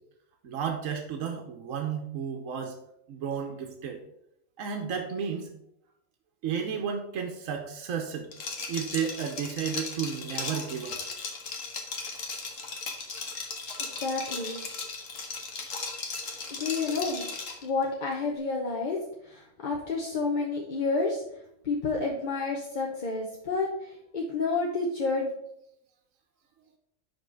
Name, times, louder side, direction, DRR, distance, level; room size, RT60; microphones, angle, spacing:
voice 1, 0.4-2.8 3.1-4.0 4.6-5.5 6.4-8.3 8.7-11.0, right 7 dB, 85° right, 3 dB, 1.2 m, -32 dB
Liquid, 8.3-17.7, left 4 dB, 80° left, 1.5 m, -37 dB
voice 2, 13.8-14.6 16.5-17.3 17.6-21.2 21.6-25.3, left 3 dB, 40° left, -1 dB, 0.9 m, -30 dB
5.4 x 4.7 x 6.2 m, 0.78 s
omnidirectional pair, 1.3 m